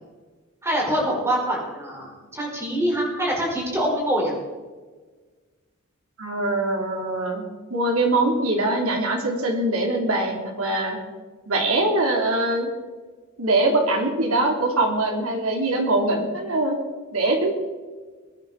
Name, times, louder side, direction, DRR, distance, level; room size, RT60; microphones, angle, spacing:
voice 1, 0.6-4.3, right 1 dB, 10° right, -3 dB, 5.1 m, -24 dB
voice 2, 6.2-7.4 7.7-11.0 11.5-12.7 13.4-16.8 17.1-17.5, right 2 dB, 85° right, 1 dB, 3.4 m, -22 dB
21.0 x 10.5 x 4.4 m, 1.4 s
head